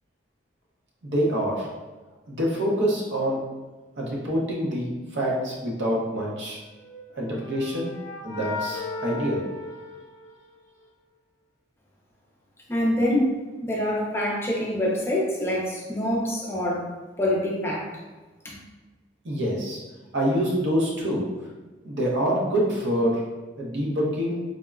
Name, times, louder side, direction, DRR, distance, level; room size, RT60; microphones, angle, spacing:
voice 1, 1.0-1.7 2.3-3.4 4.0-6.6 7.2-7.9 8.2-9.5 19.2-19.8 20.1-21.3 21.8-23.2 23.6-24.4, equal, 70° right, -4 dB, 0.7 m, -26 dB
sound 1, 6.8-10.7, left 3 dB, 65° left, 0.5 m, -36 dB
voice 2, 12.7-13.4 13.6-16.8 17.2-17.8 18.4-18.5, left 1 dB, 15° left, -4 dB, 0.4 m, -25 dB
3.5 x 2.0 x 2.3 m, 1.2 s
head